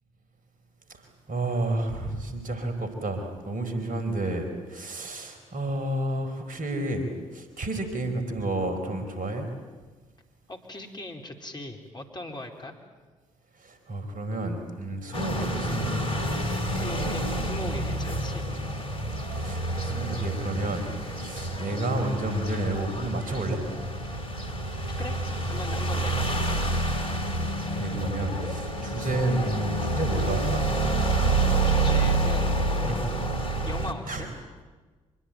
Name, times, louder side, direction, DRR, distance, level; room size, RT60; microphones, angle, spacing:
voice 1, 1.3-9.5 13.5-16.1 19.3-23.6 27.6-30.7 32.9-33.0 34.1-34.3, right 2 dB, 55° right, 6 dB, 4.6 m, -31 dB
voice 2, 10.5-12.7 16.7-18.4 24.1-24.2 25.0-26.3 31.6-33.3 33.6-34.3, left 1 dB, 25° left, 3 dB, 4.1 m, -39 dB
sound 1, 15.1-33.9, right 2 dB, 80° left, 2.0 m, -28 dB
25.5 x 21.5 x 9.3 m, 1.4 s
figure-of-eight pair, 40°, 17 cm